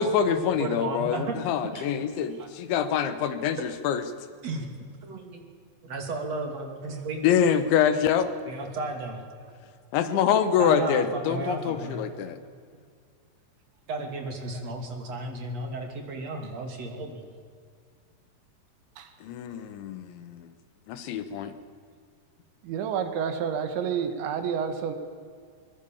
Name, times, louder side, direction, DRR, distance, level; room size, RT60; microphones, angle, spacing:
voice 1, 0.0-4.0 7.2-8.3 9.9-12.4 19.2-20.5 20.9-21.5, left 8 dB, 90° left, 11 dB, 3.8 m, -25 dB
voice 2, 0.6-1.4 1.7-1.9 2.4-2.5 4.4-5.5 5.8-7.3 7.5-7.6 8.4-9.2 10.6-12.1 13.9-17.3, right 2 dB, 40° right, 4 dB, 3.4 m, -34 dB
voice 3, 22.6-24.9, right 7 dB, 80° right, 8 dB, 4.1 m, -29 dB
23.5 x 22.0 x 7.3 m, 2.1 s
omnidirectional pair, 5.1 m